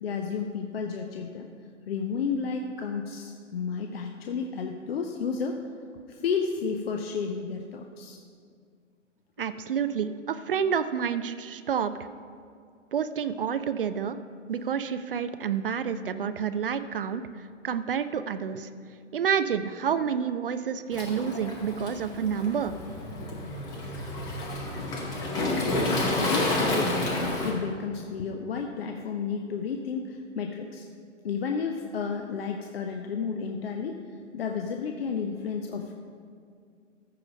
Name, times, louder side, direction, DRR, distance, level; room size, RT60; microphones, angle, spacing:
voice 1, 0.0-1.5 1.8-5.6 6.1-8.2 23.3-23.4 26.1-30.9 31.2-34.0 34.3-35.9, left 5 dB, 50° left, 4 dB, 0.7 m, -32 dB
voice 2, 9.4-11.9 12.9-14.2 14.5-18.7 19.1-22.7, right 7 dB, 45° right, 12 dB, 0.4 m, -29 dB
Waves surf, 20.9-27.5, left 2 dB, 10° left, 0.6 m, -30 dB
14.0 x 4.9 x 5.1 m, 2.3 s
hypercardioid pair, 140°, 38 cm